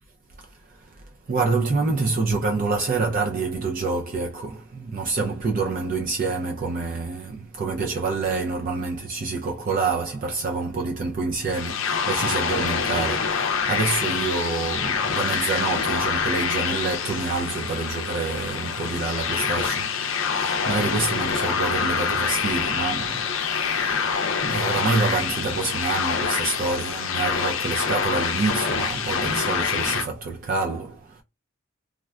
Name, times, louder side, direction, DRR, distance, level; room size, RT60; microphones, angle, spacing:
voice 1, 0.4-31.2, right 3 dB, 40° right, 0.3 m, -27 dB
sound 1, 11.4-30.1, left 6 dB, 65° left, 0.5 m, -26 dB
3.6 x 2.2 x 2.3 m
head